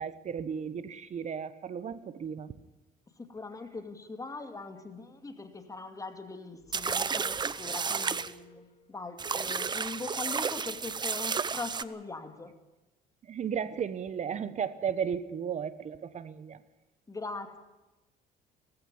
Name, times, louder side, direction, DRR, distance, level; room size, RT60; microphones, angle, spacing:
voice 1, 0.0-2.5 13.2-16.6, right 7 dB, 45° right, 1.2 m, -34 dB
voice 2, 3.2-12.6 17.1-17.6, left 3 dB, 20° left, 2.4 m, -41 dB
sound 1, 6.6-9.0, left 4 dB, 40° left, 2.8 m, -56 dB
sound 2, 6.7-8.3 9.2-11.8, right 5 dB, 25° right, 0.7 m, -32 dB
18.0 x 15.0 x 9.8 m
cardioid pair, 110°, 17 cm